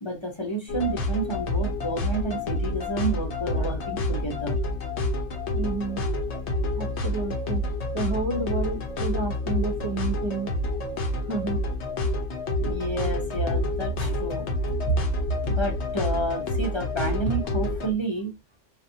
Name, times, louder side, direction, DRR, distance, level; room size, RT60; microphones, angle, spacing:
voice 1, 0.0-4.6 6.0-6.1 12.6-14.5 14.9-15.0 15.4-18.3, right 2 dB, 25° left, 0.7 m, -30 dB
sound 1, 0.7-17.9, left 1 dB, 65° left, 1.0 m, -28 dB
voice 2, 5.5-6.0 6.7-10.5 11.3-11.6, right 3 dB, 35° right, 0.5 m, -31 dB
3.4 x 2.5 x 2.6 m
omnidirectional pair, 1.3 m